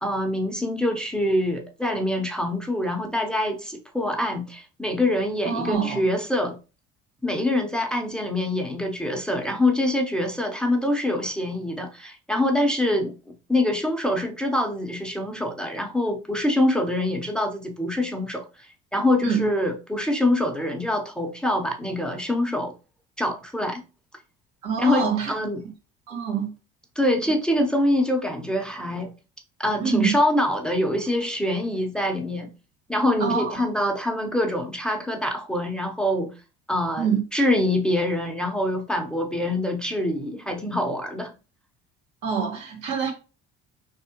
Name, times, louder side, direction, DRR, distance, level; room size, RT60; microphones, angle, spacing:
voice 1, 0.0-6.6 7.2-13.1 13.5-18.7 18.9-22.7 23.2-23.8 24.8-25.6 27.0-29.1 29.6-32.5 32.9-36.3 36.7-41.3, left 1 dB, 5° left, 0.7 m, -25 dB
voice 2, 5.5-6.1 19.2-19.5 24.6-25.3 26.1-26.5 29.8-30.2 33.2-33.6 37.0-37.2 42.2-43.1, right 6 dB, 80° right, 1.8 m, -25 dB
4.2 x 3.5 x 2.9 m
supercardioid pair, 100°, 30 cm